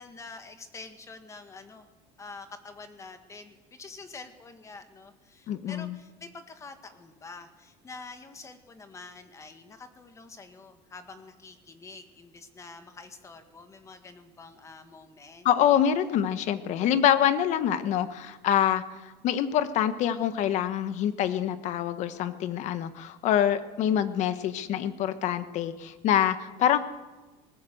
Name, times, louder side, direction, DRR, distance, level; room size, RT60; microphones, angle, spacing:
voice 1, 0.0-1.9 2.2-15.5, left 3 dB, 20° left, 8 dB, 1.9 m, -46 dB
voice 2, 5.5-5.9 15.4-26.8, left 10 dB, 45° left, 12 dB, 1.3 m, -25 dB
20.0 x 19.5 x 7.9 m, 1.2 s
cardioid pair, 160°, 16 cm